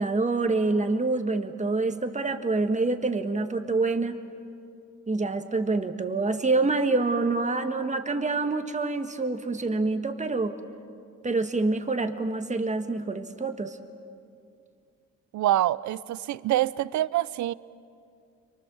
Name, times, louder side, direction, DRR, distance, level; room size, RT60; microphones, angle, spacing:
voice 1, 0.0-4.2 5.1-10.5 11.2-13.8, right 3 dB, 25° right, 1.8 m, -26 dB
voice 2, 15.3-17.5, right 14 dB, 70° right, 0.6 m, -25 dB
30.0 x 24.0 x 7.2 m
cardioid pair, 90°, 30 cm